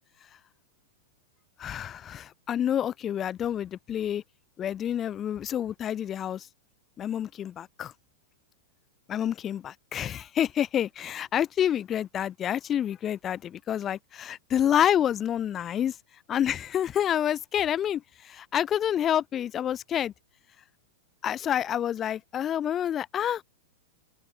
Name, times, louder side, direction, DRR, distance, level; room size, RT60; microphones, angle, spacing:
voice 1, 1.6-4.2 4.6-6.5 7.0-7.9 9.1-16.0 16.3-20.1 21.2-23.4, left 10 dB, 25° left, 4.2 m, -28 dB
open air
figure-of-eight pair, 95°, 0 cm